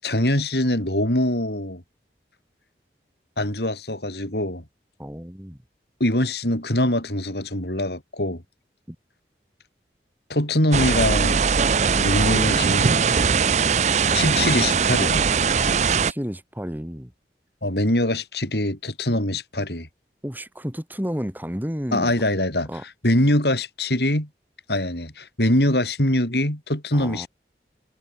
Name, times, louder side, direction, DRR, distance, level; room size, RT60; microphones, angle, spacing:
voice 1, 0.0-1.8 3.4-4.6 6.0-8.4 10.3-11.4 12.0-12.9 14.1-15.3 17.6-19.9 21.9-22.7 23.0-24.3 24.7-27.3, left 1 dB, 70° left, 8.0 m, -23 dB
voice 2, 5.0-5.6 8.9-9.0 15.7-17.1 20.2-22.1 22.7-22.8 26.9-27.3, equal, 10° right, 5.9 m, -32 dB
sound 1, 10.7-16.1, right 5 dB, 40° right, 0.6 m, -20 dB
head